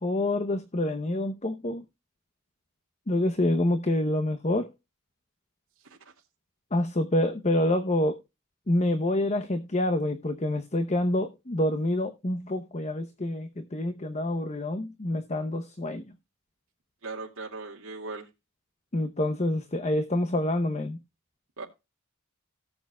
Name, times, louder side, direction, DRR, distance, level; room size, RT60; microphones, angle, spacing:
voice 1, 0.0-1.8 3.1-4.7 6.7-8.2 8.7-16.0 18.9-21.0, left 1 dB, 30° left, 0.9 m, -27 dB
voice 2, 17.0-18.3 21.6-21.7, right 3 dB, 70° right, 2.4 m, -38 dB
18.0 x 7.1 x 2.3 m
head